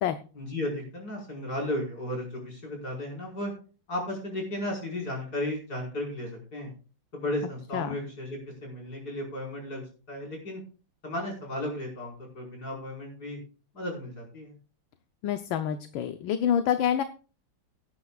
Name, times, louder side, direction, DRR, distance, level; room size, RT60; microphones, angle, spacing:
voice 1, 0.3-3.5 3.9-6.7 7.1-10.6 11.0-13.4 13.7-14.5, left 1 dB, 45° left, -1 dB, 5.5 m, -34 dB
voice 2, 15.2-17.0, left 9 dB, 70° left, 9 dB, 1.5 m, -27 dB
17.5 x 10.5 x 2.4 m, 0.36 s
omnidirectional pair, 2.3 m